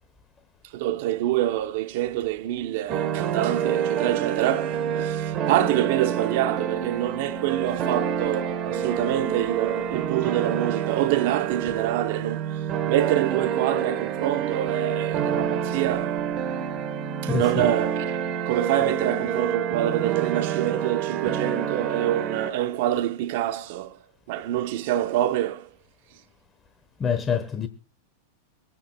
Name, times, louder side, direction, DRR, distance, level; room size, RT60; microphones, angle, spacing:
voice 1, 0.7-16.2 17.2-18.0 18.5-24.0 24.3-25.7, right 13 dB, 60° right, 0.8 m, -26 dB
sound 1, 2.9-22.5, right 8 dB, 40° right, 1.1 m, -28 dB
voice 2, 17.3-17.7 27.0-27.7, left 7 dB, 25° left, 1.0 m, -26 dB
24.5 x 9.1 x 2.2 m
hypercardioid pair, 110°, 0 cm